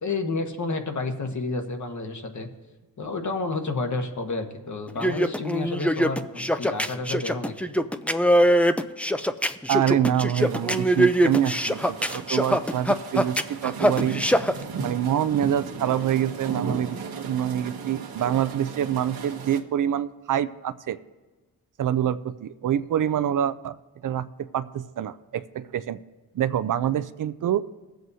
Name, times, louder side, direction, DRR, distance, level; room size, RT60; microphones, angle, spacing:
voice 1, 0.0-2.5 3.0-7.5, left 3 dB, 50° left, 4 dB, 1.3 m, -30 dB
sound 1, 4.9-14.5, equal, 5° left, 0.4 m, -22 dB
voice 2, 9.7-14.2 14.8-21.0 21.8-23.8 24.0-24.3 24.5-26.0 26.3-27.6, right 10 dB, 60° right, 14 dB, 0.5 m, -26 dB
sound 2, 10.4-19.6, right 5 dB, 75° right, 1.1 m, -36 dB
19.5 x 7.8 x 2.7 m, 1.2 s
cardioid pair, 65°, 36 cm